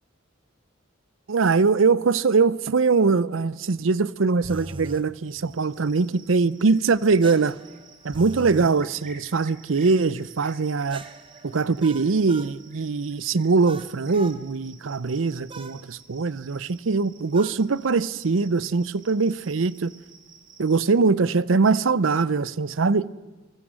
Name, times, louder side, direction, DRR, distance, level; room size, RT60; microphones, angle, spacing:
voice 1, 1.3-7.6 8.0-11.0 11.4-19.9 20.6-23.1, right 4 dB, 90° right, 0.6 m, -22 dB
sound 1, 4.4-5.1 7.2-8.8 10.9-12.5 13.6-14.4 15.5-15.8 17.3-17.6, right 2 dB, 25° right, 1.0 m, -40 dB
Cricket, 5.2-20.9, right 5 dB, 45° right, 2.7 m, -52 dB
30.0 x 19.0 x 6.3 m
head